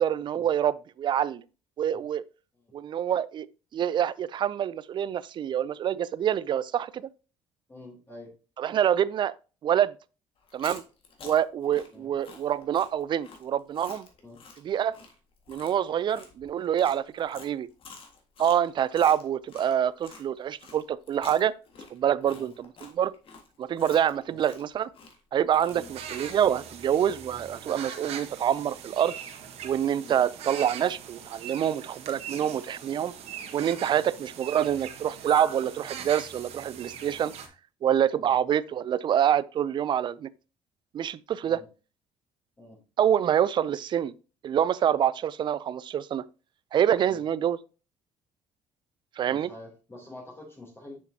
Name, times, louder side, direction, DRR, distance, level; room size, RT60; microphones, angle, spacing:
voice 1, 0.0-1.4 1.8-2.2 2.7-3.5 3.7-7.1 8.6-9.3 9.6-9.9 10.5-10.8 11.2-14.1 14.6-15.0 15.5-17.7 18.4-21.5 21.9-23.1 23.6-24.9 25.3-29.1 29.6-33.1 33.5-37.3 37.8-40.3 40.9-41.6 43.0-44.1 44.4-46.2 46.7-47.6 49.2-49.5, right 9 dB, 45° right, 0.4 m, -26 dB
voice 2, 7.7-8.3 11.9-12.1 14.2-14.4 22.3-22.5 24.2-24.4 25.7-25.9 30.0-30.2 33.9-34.1 38.2-38.4 41.5-41.7 42.6-42.8 47.0-47.2 49.3-51.0, left 2 dB, 20° left, 2.8 m, -47 dB
Chewing mastication, 10.4-20.2 20.6-26.5, left 4 dB, 50° left, 1.6 m, -49 dB
sound 1, 25.7-37.5, right 8 dB, 65° right, 1.3 m, -41 dB
7.0 x 6.4 x 2.7 m
cardioid pair, 110°, 11 cm